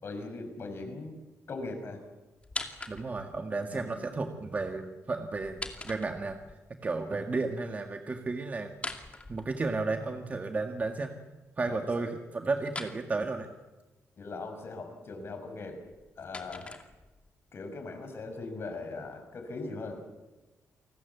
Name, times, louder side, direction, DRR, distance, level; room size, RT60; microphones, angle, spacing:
voice 1, 0.0-1.2 1.5-2.0 3.7-4.0 11.6-11.8 14.2-15.8 16.2-16.7 17.5-20.0, left 3 dB, 50° left, 6 dB, 5.9 m, -40 dB
sound 1, 2.4-3.4 5.3-6.6 8.7-10.0 12.6-13.0 15.7-17.3, left 3 dB, 25° left, 2.5 m, -41 dB
voice 2, 2.9-6.4 6.8-11.1 11.6-13.5, right 3 dB, 30° right, 4 dB, 1.9 m, -33 dB
29.0 x 19.0 x 8.2 m, 1.1 s
cardioid pair, 115°, 5 cm